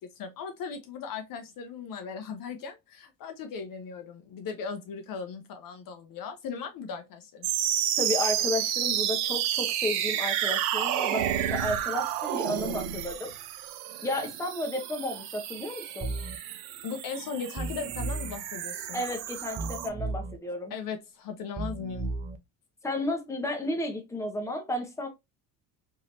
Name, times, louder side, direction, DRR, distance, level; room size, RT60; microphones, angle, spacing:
voice 1, 0.0-7.5 16.8-19.0 20.7-22.1, left 6 dB, 50° left, 0.7 m, -38 dB
sound 1, 7.4-19.9, right 11 dB, 80° right, 0.6 m, -31 dB
voice 2, 8.0-13.3 14.0-16.1 18.9-20.7 22.8-25.1, left 1 dB, 5° left, 0.8 m, -32 dB
sound 2, 16.0-16.4 17.6-18.4 19.6-20.4 21.6-22.4, right 3 dB, 20° right, 0.4 m, -34 dB
3.1 x 2.7 x 2.6 m
supercardioid pair, 95°, 44 cm